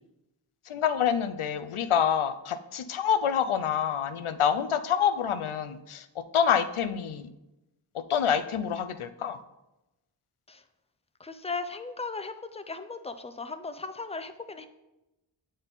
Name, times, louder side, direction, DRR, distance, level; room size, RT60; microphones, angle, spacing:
voice 1, 0.7-7.3 7.9-9.4, left 8 dB, 85° left, 11 dB, 0.6 m, -27 dB
voice 2, 11.2-14.7, left 3 dB, 15° left, 9 dB, 0.5 m, -37 dB
8.7 x 3.9 x 4.0 m, 0.98 s
wide cardioid pair, 45°, 48 cm